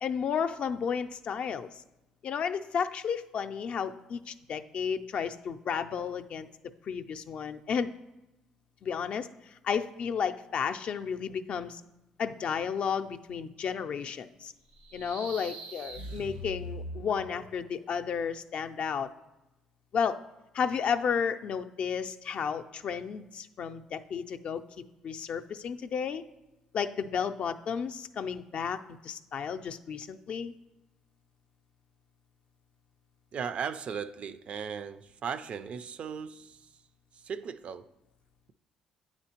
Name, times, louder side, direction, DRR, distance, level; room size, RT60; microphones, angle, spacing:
voice 1, 0.0-1.8 2.2-6.5 6.8-7.9 8.8-11.8 12.2-14.5 14.9-19.1 19.9-20.2 20.5-24.6 25.0-26.2 26.7-30.5, left 7 dB, 55° left, 0.4 m, -32 dB
sound 1, 14.7-17.6, right 1 dB, 85° right, 0.9 m, -42 dB
voice 2, 33.3-36.7 37.1-37.9, right 7 dB, 55° right, 0.3 m, -37 dB
8.8 x 4.3 x 2.9 m
hypercardioid pair, 60°, 2 cm